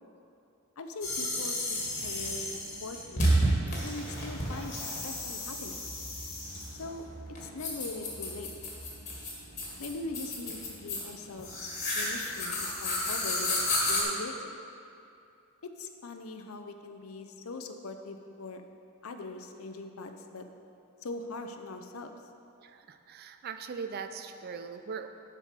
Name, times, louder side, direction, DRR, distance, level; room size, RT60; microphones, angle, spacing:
voice 1, 0.8-3.3 3.8-5.8 6.8-7.1 7.4-8.5 9.8-11.7 12.0-13.6 13.9-14.5 15.6-18.6 19.0-20.5 21.0-22.1, left 2 dB, 70° left, 6 dB, 0.6 m, -41 dB
sound 1, 1.0-14.0, equal, 30° left, 1.8 m, -32 dB
voice 2, 22.6-25.1, right 5 dB, 45° right, 8 dB, 0.4 m, -40 dB
11.0 x 4.9 x 5.1 m, 2.6 s
head